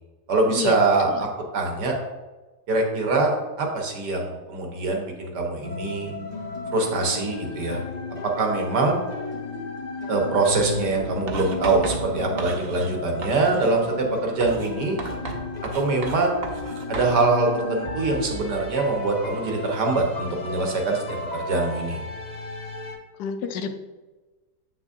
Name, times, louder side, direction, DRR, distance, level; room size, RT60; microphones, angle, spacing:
voice 1, 0.3-1.3 1.5-1.9 2.7-6.1 6.7-7.8 8.4-9.0 10.1-15.0 15.8-16.5 16.9-22.0, right 3 dB, 80° right, 1 dB, 1.8 m, -23 dB
sound 1, 5.6-23.0, left 3 dB, 45° left, 0.5 m, -34 dB
Writing, 11.3-13.0 13.2-13.8 14.4-17.2, right 4 dB, 50° right, 0.8 m, -35 dB
voice 2, 23.2-23.7, left 6 dB, 75° left, 8 dB, 1.2 m, -29 dB
7.6 x 6.2 x 2.7 m, 1.2 s
omnidirectional pair, 1.8 m